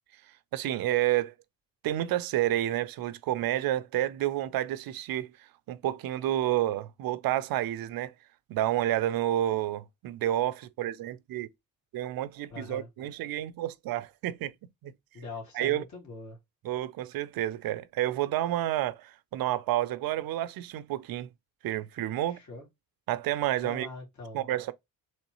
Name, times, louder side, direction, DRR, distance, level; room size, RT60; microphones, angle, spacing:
voice 1, 0.5-1.3 1.8-5.3 5.7-8.1 8.5-11.5 11.9-14.5 14.8-14.9 15.5-15.8 16.6-21.3 21.6-22.4 23.1-23.9 24.3-24.7, right 13 dB, 80° right, 0.6 m, -30 dB
voice 2, 12.5-12.9 15.1-16.4 22.1-22.7 23.6-24.5, left 3 dB, 55° left, 2.5 m, -43 dB
3.9 x 3.2 x 3.0 m
cardioid pair, 120°, 35 cm